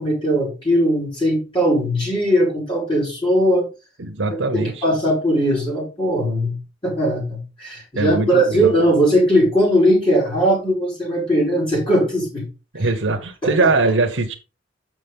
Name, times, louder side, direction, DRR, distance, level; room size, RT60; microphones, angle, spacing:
voice 1, 0.0-3.7 4.5-6.6 6.8-12.4 13.4-13.7, equal, 30° left, -3 dB, 3.7 m, -19 dB
voice 2, 4.0-4.8 7.9-8.7 12.7-14.3, right 3 dB, 80° right, 3 dB, 1.1 m, -21 dB
7.5 x 6.2 x 3.6 m, 0.29 s
head